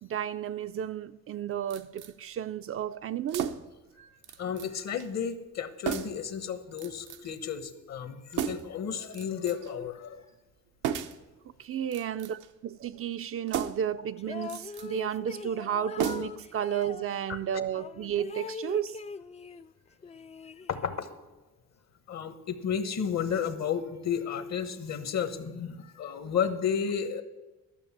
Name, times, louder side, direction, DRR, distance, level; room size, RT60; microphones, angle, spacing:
voice 1, 0.0-3.5 11.6-19.0, right 9 dB, 50° right, 0.4 m, -33 dB
sound 1, 1.7-2.1 3.3-3.8 4.2-4.7 5.0-5.1 5.9-6.3 6.8-7.3 8.3-8.8 9.1-9.7 10.8-11.3 11.8-12.5 13.5-13.9 14.4-14.9 16.0-16.5 16.8-16.9, right 9 dB, 85° right, 0.7 m, -34 dB
voice 2, 4.4-10.3 17.3-17.4 20.7-21.1 22.1-27.2, left 7 dB, 60° left, 1.2 m, -32 dB
sound 2, 14.2-17.1 17.7-19.7 20.0-21.1, left 4 dB, 20° left, 0.3 m, -41 dB
12.5 x 6.7 x 7.3 m
cardioid pair, 90°, 30 cm